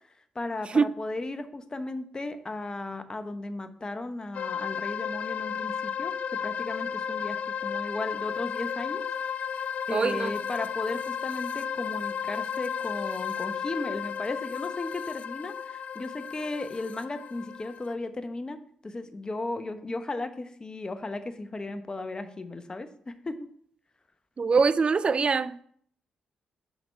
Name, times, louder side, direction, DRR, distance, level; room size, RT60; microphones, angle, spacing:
voice 1, 0.3-9.0 9.6-23.4, left 2 dB, 30° left, 0.8 m, -36 dB
sound 1, 4.4-17.9, left 7 dB, 65° left, 0.3 m, -33 dB
voice 2, 9.9-10.3 24.4-25.6, right 5 dB, 45° right, 0.4 m, -23 dB
5.8 x 4.3 x 5.5 m
supercardioid pair, 55°, 3 cm